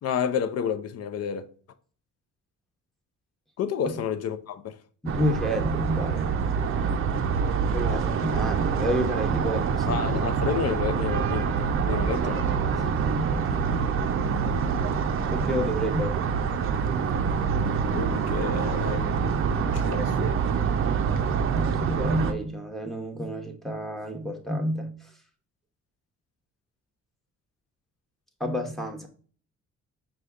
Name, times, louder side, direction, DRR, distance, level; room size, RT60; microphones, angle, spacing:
voice 1, 0.0-1.4 3.6-4.8 9.9-12.5 17.9-19.1 19.6-20.4, left 8 dB, 55° left, 0.5 m, -30 dB
voice 2, 5.0-6.3 7.7-10.3 12.7-13.9 14.9-15.0 15.3-16.2 21.5-25.1 28.4-29.1, equal, ahead, 0.9 m, -30 dB
sound 1, 5.1-22.3, right 6 dB, 45° right, 0.5 m, -26 dB
5.0 x 2.3 x 3.5 m
cardioid pair, 90°, 30 cm